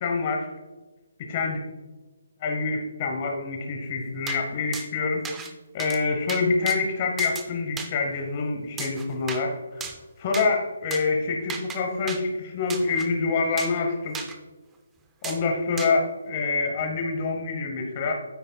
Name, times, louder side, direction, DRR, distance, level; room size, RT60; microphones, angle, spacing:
voice 1, 0.0-0.5 1.3-1.6 2.4-5.5 5.7-14.2 15.2-18.1, left 4 dB, 25° left, 2 dB, 0.9 m, -26 dB
sound 1, 4.3-4.4 4.7-4.9 5.2-5.5 5.8-6.0 6.3-6.8 7.2-7.5 7.8-7.9 8.8-9.4 9.8-10.0 10.3-10.5 10.9-11.0 11.5-11.8 12.1-12.2 12.7-13.1 13.6-13.8 14.1-14.4 15.2-15.4 15.8-15.9, right 6 dB, 10° right, 0.4 m, -35 dB
9.2 x 8.3 x 2.2 m, 1.2 s
hypercardioid pair, 175°, 0 cm